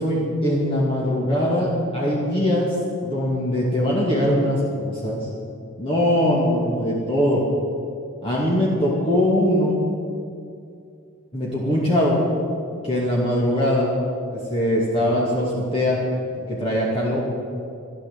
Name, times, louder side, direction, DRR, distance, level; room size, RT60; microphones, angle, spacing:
voice 1, 0.0-2.7 3.0-5.3 5.8-7.4 8.2-9.8 11.3-12.2 12.8-13.9 14.5-16.0 16.5-17.2, left 1 dB, 25° left, -5 dB, 2.5 m, -21 dB
14.5 x 11.5 x 8.4 m, 2.5 s
head